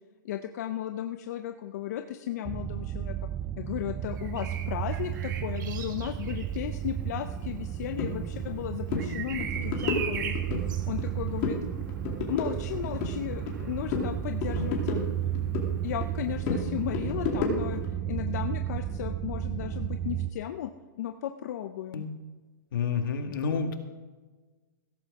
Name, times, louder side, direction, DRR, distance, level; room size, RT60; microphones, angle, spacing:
voice 1, 0.2-3.1 3.6-10.4 10.8-11.6 12.3-15.1 15.8-20.7 21.0-22.0, left 11 dB, 50° left, 7 dB, 0.6 m, -35 dB
sound 1, 2.4-20.3, right 10 dB, 10° right, 0.4 m, -33 dB
Bird vocalization bird call bird song, 4.1-15.9 17.6-17.8, right 7 dB, 60° right, 1.8 m, -42 dB
sound 2, 8.0-8.1 8.5-8.6 8.9-9.1 9.4-10.6 11.0-11.6 11.9-13.6 13.9-15.7 16.0-17.9, left 4 dB, 35° left, 2.7 m, -32 dB
voice 2, 22.7-23.7, left 6 dB, 70° left, 5 dB, 1.9 m, -29 dB
16.5 x 14.0 x 3.6 m, 1.3 s
hypercardioid pair, 165°, 11 cm